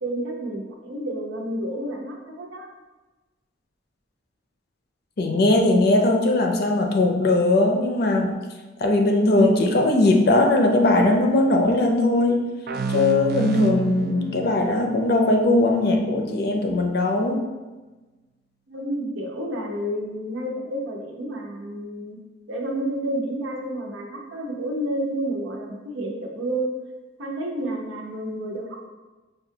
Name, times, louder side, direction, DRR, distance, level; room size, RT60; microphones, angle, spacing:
voice 1, 0.0-2.7 18.7-22.2 22.5-26.7 27.2-28.9, right 1 dB, 90° right, 0 dB, 0.7 m, -30 dB
voice 2, 5.2-8.4 8.8-12.5 12.9-17.4, left 2 dB, 55° left, 2 dB, 0.5 m, -19 dB
sound 1, 12.7-16.1, right 5 dB, 50° right, 0.3 m, -31 dB
5.3 x 2.3 x 2.7 m, 1.2 s
head